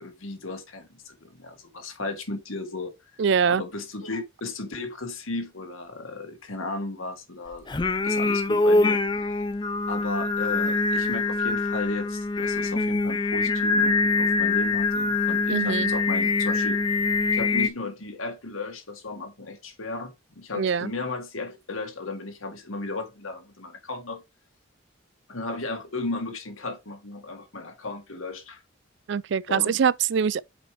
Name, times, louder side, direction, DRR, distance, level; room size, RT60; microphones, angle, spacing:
voice 1, 0.0-2.9 3.6-7.7 8.0-9.3 9.9-16.8 17.3-24.2 25.3-28.6 29.5-29.8, left 2 dB, 85° left, 1.8 m, -35 dB
voice 2, 3.2-3.6 15.5-15.9 20.5-20.9 29.1-30.4, right 6 dB, 60° right, 0.3 m, -23 dB
Singing, 7.7-17.7, left 3 dB, 20° left, 0.4 m, -24 dB
5.1 x 4.7 x 4.8 m
head